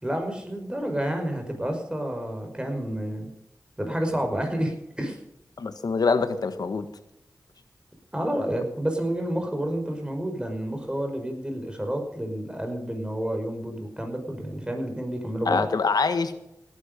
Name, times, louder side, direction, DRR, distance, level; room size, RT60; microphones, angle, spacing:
voice 1, 0.0-3.3 3.8-5.2 8.1-15.7, right 1 dB, 15° right, 3 dB, 5.3 m, -29 dB
voice 2, 5.6-6.8 15.4-16.4, left 4 dB, 85° left, 9 dB, 1.5 m, -24 dB
17.5 x 11.0 x 5.3 m, 0.83 s
cardioid pair, 50°, 7 cm